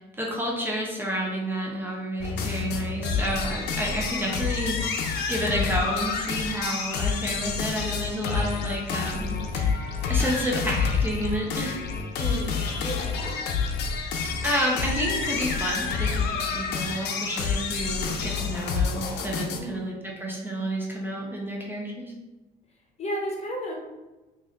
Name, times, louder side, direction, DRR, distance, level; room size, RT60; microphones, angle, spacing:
voice 1, 0.0-4.8 5.3-9.4 9.6-11.8 14.4-19.9 20.2-22.1, right 1 dB, 10° right, -2 dB, 0.7 m, -30 dB
sound 1, 2.2-19.6, left 5 dB, 80° left, 0.6 m, -28 dB
voice 2, 12.2-13.4 19.6-19.8 23.0-23.7, equal, 40° left, -1 dB, 1.0 m, -33 dB
3.1 x 2.6 x 3.8 m, 1.1 s
cardioid pair, 110°, 17 cm